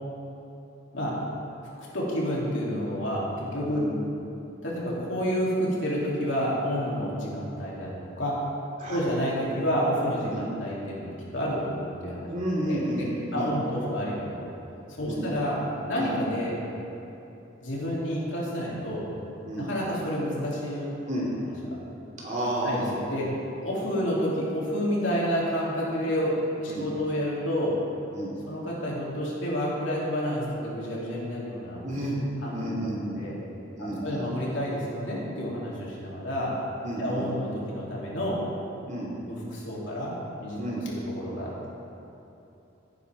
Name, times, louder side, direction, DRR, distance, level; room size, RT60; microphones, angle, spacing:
voice 1, 1.9-3.8 4.6-7.9 8.2-8.4 8.9-12.3 12.7-14.5 15.0-16.6 17.6-19.1 19.6-20.9 21.2-21.3 21.6-21.8 22.6-23.3 23.6-27.8 28.5-31.8 32.4-33.4 33.8-36.6 37.0-38.4 39.2-40.1 40.4-40.6 40.9-41.7, equal, 75° left, -5 dB, 2.9 m, -29 dB
voice 2, 3.7-4.0 8.8-9.0 10.3-10.5 12.3-13.1 13.3-13.5 15.0-15.2 16.0-16.1 19.4-19.7 21.1-21.2 22.2-23.0 26.7-26.9 28.1-28.3 31.8-32.2 32.5-33.2 33.7-34.2 36.8-37.2 38.9-39.1 40.6-40.8, right 1 dB, 40° right, -5 dB, 2.9 m, -31 dB
15.5 x 9.5 x 3.6 m, 2.9 s
head